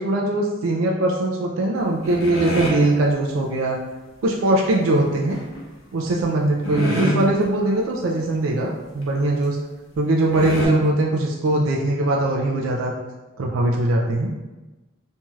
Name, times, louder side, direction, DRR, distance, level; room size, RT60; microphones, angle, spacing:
voice 1, 0.0-3.8 4.2-5.4 5.9-9.6 10.0-12.9 13.4-14.3, right 2 dB, 70° right, -2 dB, 0.4 m, -21 dB
sound 1, 2.0-2.8 5.3-5.6 6.2-6.3 6.6-7.5 7.9-8.0 8.3-8.5 9.0-9.1 9.9-10.0 10.3-10.7, equal, 65° left, 0.7 m, -26 dB
3.0 x 2.7 x 2.3 m, 1.1 s
head